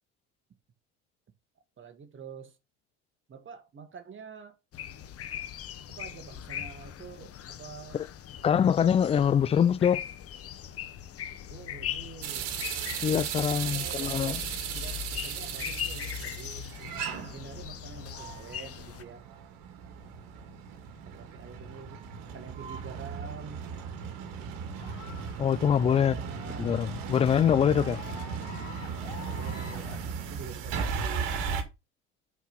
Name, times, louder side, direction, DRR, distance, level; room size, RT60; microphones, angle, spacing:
voice 1, 1.8-2.6 3.3-4.6 5.9-8.0 11.5-12.6 13.1-16.7 17.1-19.2 21.0-23.7 25.7-26.8 27.4-28.3 29.1-29.9 30.3-31.6, right 6 dB, 35° right, 1.5 m, -47 dB
sound 1, 4.7-19.0, left 10 dB, 40° left, 0.9 m, -40 dB
voice 2, 8.4-10.1 13.0-14.4 25.4-26.2 26.6-28.0, left 8 dB, 20° left, 0.3 m, -24 dB
sound 2, 12.2-31.6, right 7 dB, 65° right, 1.7 m, -36 dB
sound 3, 24.7-30.0, left 9 dB, 90° left, 1.1 m, -48 dB
5.6 x 4.7 x 5.6 m
hypercardioid pair, 80°, 37 cm